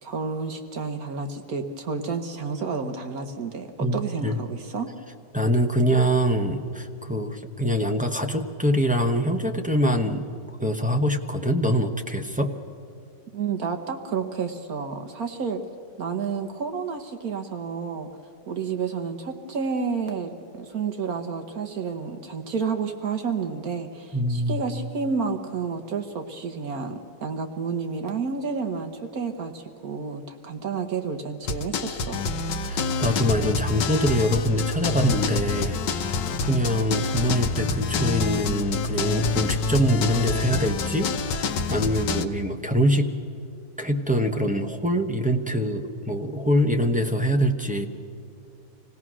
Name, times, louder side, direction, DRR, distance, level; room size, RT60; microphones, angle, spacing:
voice 1, 0.0-4.9 13.3-15.6 16.0-18.1 18.5-32.3, right 5 dB, 60° right, 6 dB, 1.4 m, -30 dB
voice 2, 3.8-4.4 5.3-10.2 10.6-12.5 24.1-24.6 32.7-43.1 43.8-47.9, equal, 5° right, 3 dB, 0.6 m, -24 dB
sound 1, 31.5-42.3, left 4 dB, 85° left, 1.5 m, -27 dB
26.0 x 17.5 x 6.2 m, 2.5 s
omnidirectional pair, 1.9 m